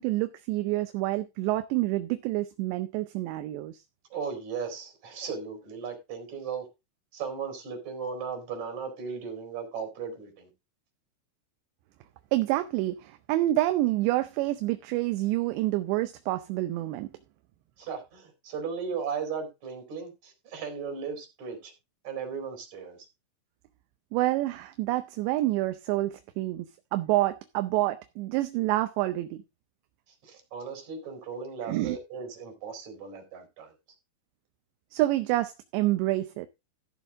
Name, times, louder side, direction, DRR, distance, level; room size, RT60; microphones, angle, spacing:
voice 1, 0.0-3.8 12.3-17.1 24.1-26.7 26.9-29.4 31.7-32.0 34.9-36.5, right 16 dB, 80° right, 2.7 m, -28 dB
voice 2, 4.1-6.6 7.1-10.5 17.8-21.7 22.0-23.0 30.2-33.7, right 6 dB, 40° right, 5.1 m, -36 dB
14.5 x 7.0 x 3.6 m
omnidirectional pair, 5.4 m